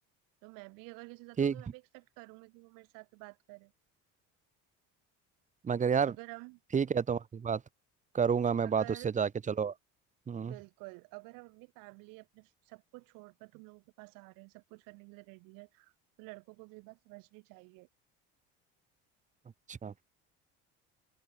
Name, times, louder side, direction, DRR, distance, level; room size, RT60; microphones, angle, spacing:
voice 1, 0.4-3.7 6.1-6.6 8.6-9.1 10.4-15.9 16.2-17.9, right 28 dB, 75° right, 1.3 m, -51 dB
voice 2, 5.6-6.1 6.7-7.6 8.1-9.7 10.3-10.6 19.7-19.9, right 6 dB, 20° right, 0.8 m, -30 dB
supercardioid pair, 85°, 34 cm